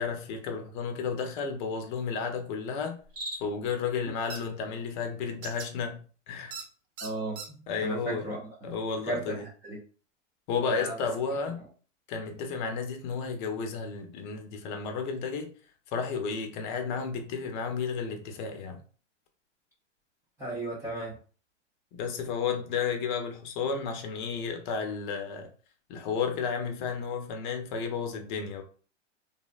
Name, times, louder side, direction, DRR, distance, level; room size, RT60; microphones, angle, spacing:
voice 1, 0.0-3.0 3.4-6.6 7.7-8.4 8.6-9.4 10.5-11.6 12.1-15.5 15.9-18.8 21.9-25.5 25.9-28.6, left 5 dB, 40° left, 0.6 m, -32 dB
Cricket, 3.0-3.7, equal, 80° right, 1.1 m, -40 dB
sound 1, 4.3-4.4 5.4-5.7 6.5-6.6 7.0-7.5, right 5 dB, 60° right, 0.7 m, -39 dB
voice 2, 7.0-8.4 9.1-9.8 10.7-10.9 20.4-21.1, right 1 dB, 10° right, 0.3 m, -35 dB
2.7 x 2.0 x 2.4 m
hypercardioid pair, 115°, 38 cm